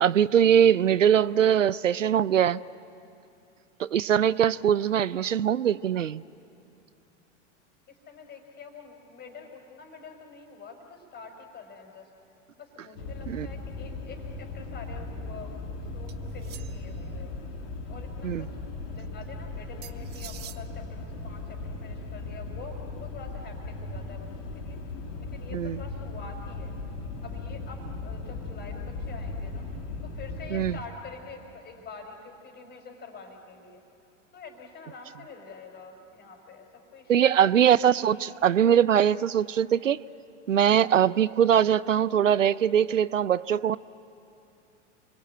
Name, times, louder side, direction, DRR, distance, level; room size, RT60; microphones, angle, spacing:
voice 1, 0.0-2.6 3.8-6.2 13.3-13.5 18.2-18.4 25.5-25.8 30.5-30.8 37.1-40.0 40.5-43.8, right 9 dB, 80° right, 20 dB, 0.6 m, -22 dB
voice 2, 7.9-12.1 12.6-17.4 17.9-24.9 25.2-26.7 27.2-29.7 30.0-33.8 34.3-37.6, left 5 dB, 25° left, 4 dB, 4.9 m, -46 dB
sound 1, 13.0-30.8, left 3 dB, 50° left, 4.4 m, -37 dB
sound 2, 16.1-17.0 19.8-20.6, right 12 dB, 25° right, 0.9 m, -45 dB
29.0 x 23.0 x 9.0 m, 2.7 s
figure-of-eight pair, 90°, 37 cm